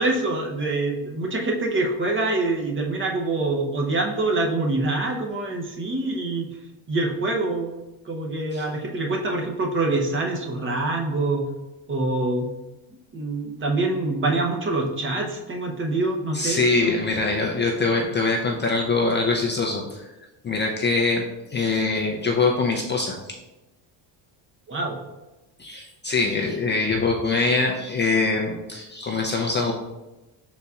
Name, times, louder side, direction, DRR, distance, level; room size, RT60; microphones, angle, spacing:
voice 1, 0.0-6.5 6.9-7.8 8.0-11.4 11.9-12.5 13.1-16.9 24.7-25.0, right 2 dB, 30° right, 0 dB, 0.8 m, -25 dB
voice 2, 16.3-20.1 20.4-21.2 21.5-23.3 25.6-29.7, left 3 dB, 25° left, 0 dB, 0.4 m, -23 dB
5.5 x 4.0 x 2.4 m, 1.0 s
cardioid pair, 105°, 43 cm